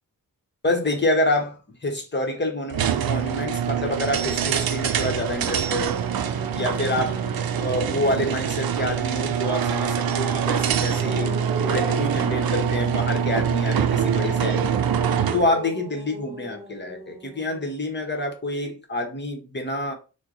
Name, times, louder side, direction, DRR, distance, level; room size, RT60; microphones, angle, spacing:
voice 1, 0.6-6.0 6.5-7.2 7.6-14.8 15.3-19.9, left 1 dB, 30° left, 1.0 m, -27 dB
sound 1, 2.7-15.5, right 8 dB, 85° right, 0.5 m, -24 dB
sound 2, 4.9-5.0 5.4-9.0 10.7-17.9, right 2 dB, 20° right, 0.6 m, -37 dB
4.5 x 2.2 x 3.8 m
wide cardioid pair, 100°, 34 cm